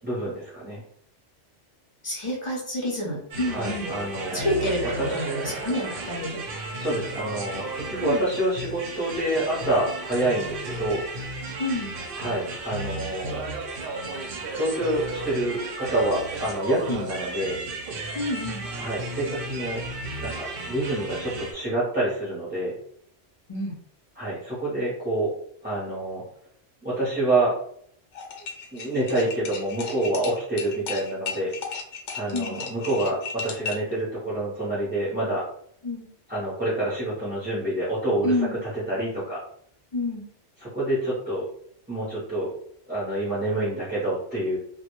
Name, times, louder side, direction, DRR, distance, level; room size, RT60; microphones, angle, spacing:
voice 1, 0.0-0.8 3.5-5.6 6.8-11.0 12.2-13.4 14.6-17.6 18.8-19.8 20.2-22.7 24.1-25.3 25.6-26.2 26.8-27.5 28.7-31.5 32.1-35.4 36.3-39.4 40.6-41.4 41.9-42.5 42.9-44.6, right 1 dB, 10° right, -9 dB, 0.5 m, -27 dB
voice 2, 2.0-3.9 4.3-4.8 5.1-6.4 8.0-8.2 11.6-11.9 16.9-17.0 18.1-18.6 23.5-23.7 32.3-32.6 35.8-36.1 38.2-38.5 39.9-40.2, left 1 dB, 40° left, -3 dB, 0.4 m, -28 dB
sound 1, 3.3-21.5, right 2 dB, 60° right, 0.6 m, -34 dB
sound 2, 28.1-33.9, left 6 dB, 85° left, 0.9 m, -35 dB
2.1 x 2.1 x 2.9 m, 0.66 s
omnidirectional pair, 1.2 m